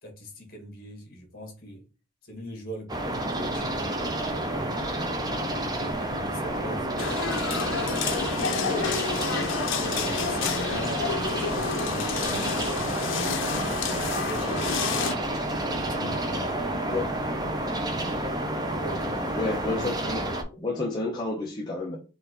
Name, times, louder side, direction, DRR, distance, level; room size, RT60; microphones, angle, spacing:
voice 1, 0.0-1.8 2.2-4.8 5.7-6.9 8.4-11.1 11.5-13.4 14.1-15.0 15.7-17.2 18.7-19.1, right 1 dB, 50° left, 1.8 m, -41 dB
sound 1, 2.9-20.4, right 1 dB, 20° right, 0.7 m, -30 dB
sound 2, 7.0-15.1, left 6 dB, 70° left, 0.6 m, -30 dB
voice 2, 19.4-20.2 20.5-22.0, left 2 dB, 20° left, 0.8 m, -30 dB
4.5 x 2.6 x 3.9 m
head